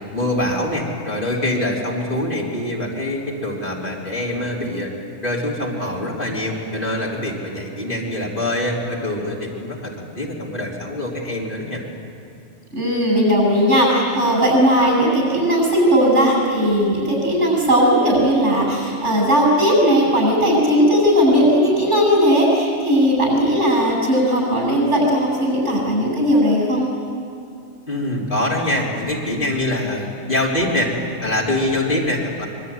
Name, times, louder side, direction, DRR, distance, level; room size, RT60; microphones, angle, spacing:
voice 1, 0.1-4.9 5.2-11.8 27.9-32.5, left 1 dB, 45° left, -2 dB, 3.8 m, -24 dB
voice 2, 12.7-26.9, equal, 80° right, -1 dB, 8.4 m, -17 dB
24.5 x 23.0 x 9.4 m, 2.5 s
omnidirectional pair, 1.2 m